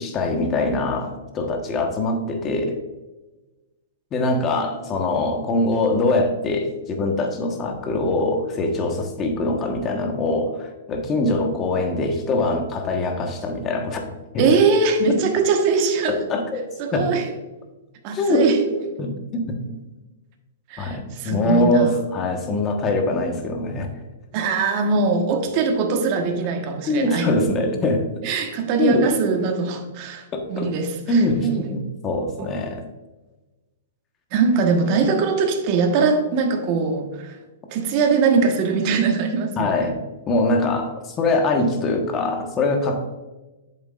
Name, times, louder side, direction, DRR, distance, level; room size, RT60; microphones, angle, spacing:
voice 1, 0.0-2.7 4.1-14.5 16.1-16.6 16.9-17.1 18.1-18.5 19.0-19.6 20.8-23.9 26.8-28.0 28.8-29.1 30.3-30.7 31.1-32.8 39.6-40.0 40.3-43.1, left 2 dB, 25° left, 4 dB, 1.2 m, -23 dB
voice 2, 14.4-16.2 16.8-17.3 18.0-18.9 19.7-19.8 20.7-21.9 24.3-27.7 28.2-31.7 32.4-32.5 34.3-37.3 37.7-39.9, right 4 dB, 40° right, 4 dB, 1.3 m, -22 dB
8.2 x 7.1 x 2.5 m, 1.1 s
hypercardioid pair, 140°, 0 cm